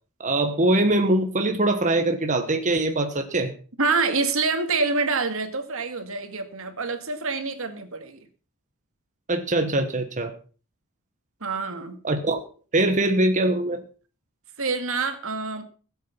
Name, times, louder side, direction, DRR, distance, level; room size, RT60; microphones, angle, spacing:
voice 1, 0.2-3.5 9.3-10.3 12.0-12.4 12.7-13.8, right 1 dB, 35° right, 6 dB, 1.3 m, -22 dB
voice 2, 3.8-8.2 11.4-12.0 14.6-15.6, right 4 dB, 65° right, 8 dB, 2.1 m, -26 dB
17.0 x 8.5 x 5.8 m, 0.38 s
head